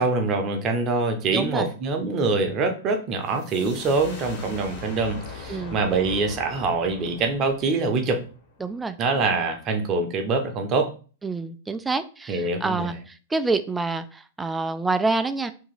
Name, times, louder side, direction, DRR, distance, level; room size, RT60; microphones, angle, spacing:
voice 1, 0.0-8.2 9.0-10.9 12.3-13.0, right 3 dB, 35° right, 5 dB, 0.7 m, -24 dB
voice 2, 1.3-1.7 5.5-5.8 8.6-9.0 11.2-15.5, right 3 dB, 10° right, 10 dB, 0.3 m, -27 dB
sound 1, 3.3-8.8, left 3 dB, 50° left, 1.4 m, -40 dB
2.8 x 2.8 x 3.9 m, 0.37 s
figure-of-eight pair, 100°, 0 cm